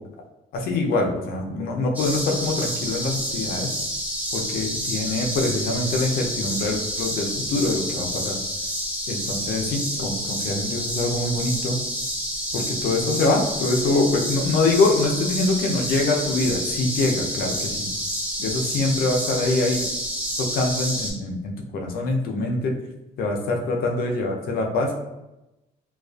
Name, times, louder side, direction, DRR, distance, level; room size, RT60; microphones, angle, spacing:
voice 1, 0.5-3.7 4.3-8.4 9.1-11.8 12.5-17.9 18.4-19.8 20.4-22.7 23.2-24.9, left 2 dB, 65° left, 1 dB, 0.5 m, -24 dB
sound 1, 1.9-21.1, equal, 10° right, 0.6 m, -29 dB
2.4 x 2.3 x 2.3 m, 0.94 s
cardioid pair, 110°, 17 cm